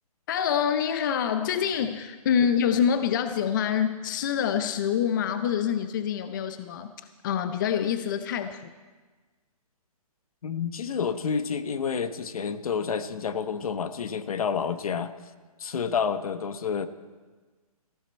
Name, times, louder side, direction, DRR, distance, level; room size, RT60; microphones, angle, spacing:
voice 1, 0.3-6.9 7.2-8.7, left 8 dB, 30° left, 10 dB, 0.5 m, -26 dB
voice 2, 10.4-15.1 15.6-16.9, left 6 dB, 65° left, 12 dB, 1.0 m, -29 dB
15.0 x 14.5 x 4.3 m, 1.3 s
hypercardioid pair, 160°, 20 cm